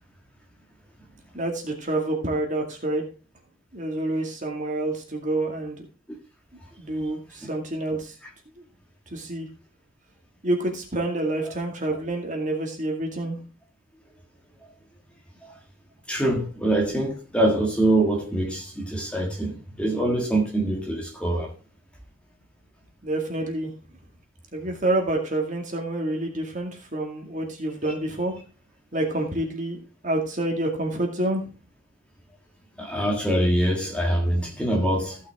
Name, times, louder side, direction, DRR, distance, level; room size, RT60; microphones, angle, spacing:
voice 1, 1.3-3.0 3.7-5.9 6.8-8.1 9.1-9.5 10.4-13.4 23.0-23.7 24.5-28.3 28.9-31.5, right 1 dB, 35° right, 2.1 m, -28 dB
voice 2, 16.1-21.5 32.8-35.2, right 1 dB, 5° left, 1.8 m, -24 dB
15.0 x 5.9 x 3.6 m
head